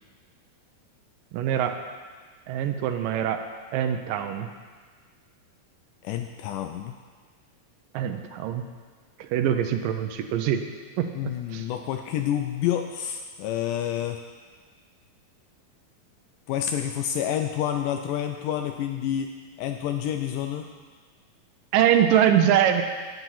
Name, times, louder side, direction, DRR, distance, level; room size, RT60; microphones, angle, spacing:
voice 1, 1.3-1.8 2.5-3.4 3.7-4.5 7.9-8.6 9.2-10.7 11.0-11.1 11.5-11.6 21.7-22.8, right 10 dB, 80° right, 7 dB, 2.2 m, -23 dB
voice 2, 6.0-6.9 11.1-14.2 16.5-19.3 19.6-20.7, left 10 dB, 80° left, 5 dB, 1.9 m, -28 dB
10.5 x 9.1 x 5.6 m, 1.5 s
omnidirectional pair, 4.1 m